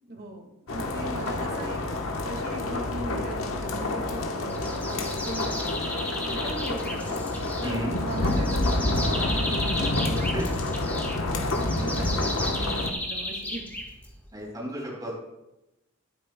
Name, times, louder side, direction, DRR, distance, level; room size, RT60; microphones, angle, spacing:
voice 1, 0.0-1.8 2.3-5.8 6.3-7.2 7.6-9.4 9.8-10.8 11.5-13.7, right 1 dB, 50° right, 2 dB, 1.9 m, -38 dB
sound 1, 0.7-12.9, left 2 dB, 85° left, 1.1 m, -28 dB
sound 2, 4.5-14.3, left 1 dB, 10° left, 1.4 m, -35 dB
voice 2, 7.6-8.0 10.3-10.4 11.8-12.3 14.3-15.1, equal, 20° right, -3 dB, 4.1 m, -34 dB
18.0 x 8.8 x 2.2 m, 0.93 s
head